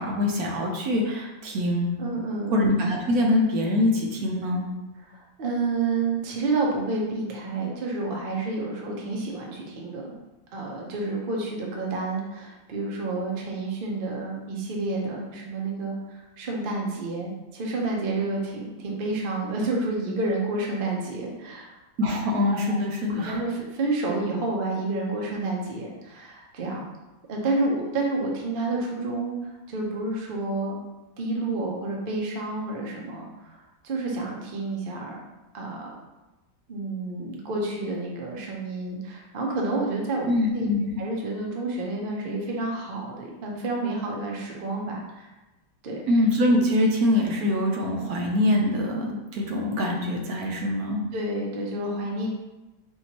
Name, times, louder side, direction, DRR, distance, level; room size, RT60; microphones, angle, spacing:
voice 1, 0.0-1.9 2.5-4.6 22.0-23.4 40.3-41.0 46.1-51.0, left 1 dB, 65° right, 0 dB, 1.0 m, -24 dB
voice 2, 2.0-2.6 5.1-10.1 10.5-21.7 22.7-22.8 23.2-26.8 27.3-30.7 31.2-35.2 35.5-35.9 36.7-40.7 41.0-45.3 45.8-46.0 51.1-52.3, right 2 dB, 85° right, -1 dB, 0.4 m, -29 dB
4.5 x 3.4 x 2.8 m, 1.1 s
omnidirectional pair, 2.0 m